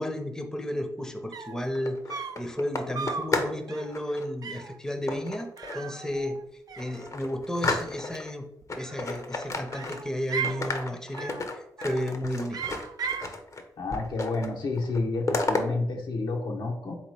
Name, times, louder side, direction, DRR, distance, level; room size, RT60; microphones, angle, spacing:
voice 1, 0.0-6.4 6.8-8.4 8.8-12.8, left 1 dB, 5° left, 4 dB, 0.6 m, -33 dB
sound 1, 1.0-1.1 1.3-1.7 2.1-2.5 2.9-3.3 3.7-4.0 4.4-4.8 5.6-6.4 6.7-7.4 8.6-9.2 9.7-10.6 11.2-11.5 11.8-12.1 12.5-13.3, right 6 dB, 55° right, 0.5 m, -36 dB
sound 2, 1.6-3.6 3.9-4.3 5.1-5.9 6.3-6.4 6.8-8.3 8.7-10.2 10.4-13.6 13.9-14.5 14.8-15.6, left 3 dB, 40° left, 0.7 m, -32 dB
voice 2, 13.8-17.0, left 3 dB, 75° left, 1 dB, 0.9 m, -30 dB
3.7 x 2.9 x 4.6 m, 0.80 s
cardioid pair, 65°, 8 cm